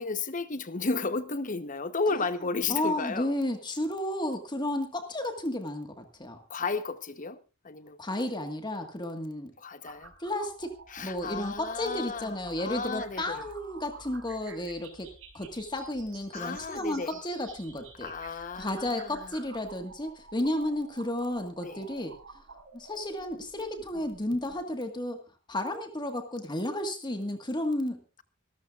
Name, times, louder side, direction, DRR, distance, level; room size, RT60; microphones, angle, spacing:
voice 1, 0.0-3.3 6.5-7.4 7.6-8.0 9.6-10.1 10.9-13.5 16.3-17.2 18.0-19.4 21.6-21.8, left 4 dB, 40° left, 1.0 m, -33 dB
voice 2, 2.7-6.4 8.0-9.5 10.2-18.1 18.5-22.4 22.7-25.2 25.5-28.2, left 1 dB, 20° left, 1.6 m, -33 dB
sound 1, 9.8-24.8, right 4 dB, 65° right, 5.3 m, -51 dB
24.5 x 13.5 x 2.5 m
head